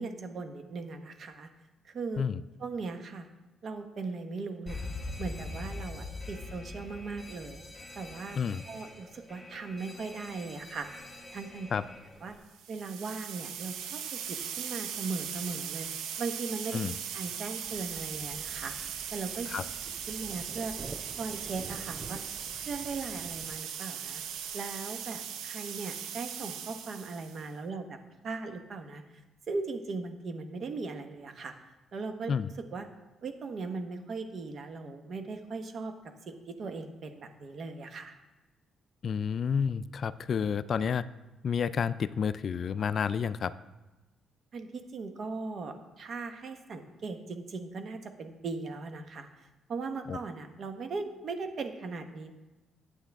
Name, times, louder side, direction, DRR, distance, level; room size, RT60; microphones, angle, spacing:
voice 1, 0.0-1.5 1.8-2.2 2.6-3.3 3.6-4.8 5.2-7.6 8.0-8.4 8.7-10.9 11.3-11.7 12.2-12.4 12.7-15.9 16.2-16.8 17.1-19.5 20.1-20.7 21.2-22.2 22.5-24.2 24.5-28.0 28.2-29.0 29.5-31.5 31.9-32.3 32.7-32.9 33.2-35.9 36.3-38.1 44.5-49.3 49.7-52.3, right 4 dB, 55° right, 7 dB, 1.1 m, -38 dB
Alarm, 4.7-12.4, left 2 dB, 20° left, 1.5 m, -43 dB
sound 1, 12.5-27.5, right 8 dB, 85° right, 0.7 m, -39 dB
sound 2, 17.6-23.6, right 3 dB, 25° right, 0.4 m, -48 dB
voice 2, 39.0-41.0 41.4-43.5 50.1-50.2, left 7 dB, 50° left, 15 dB, 0.3 m, -30 dB
9.9 x 8.2 x 3.5 m, 1.1 s
cardioid pair, 90°, 0 cm